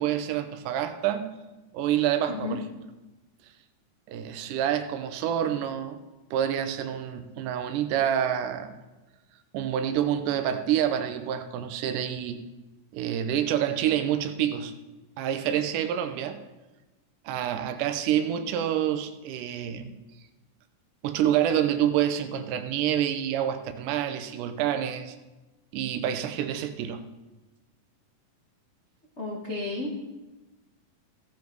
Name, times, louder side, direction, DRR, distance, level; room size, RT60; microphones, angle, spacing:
voice 1, 0.0-1.4 1.7-2.6 4.1-6.0 6.3-8.7 9.5-12.4 12.9-14.7 15.2-16.4 17.3-20.0 21.0-25.2 25.7-27.1, right 10 dB, 75° right, 8 dB, 2.3 m, -27 dB
voice 2, 29.2-30.0, left 3 dB, 90° left, -3 dB, 0.6 m, -32 dB
16.0 x 7.2 x 4.7 m, 1.1 s
omnidirectional pair, 3.9 m